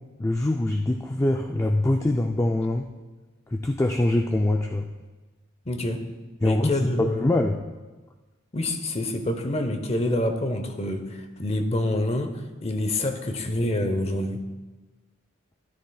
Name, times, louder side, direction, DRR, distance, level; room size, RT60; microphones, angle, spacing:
voice 1, 0.2-2.9 3.5-4.9 6.4-6.7 7.0-7.6, left 1 dB, 15° left, 3 dB, 0.3 m, -23 dB
voice 2, 5.7-6.0 6.4-7.3 8.5-14.4, left 1 dB, 30° left, 7 dB, 0.7 m, -27 dB
13.0 x 13.0 x 2.3 m, 1.2 s
head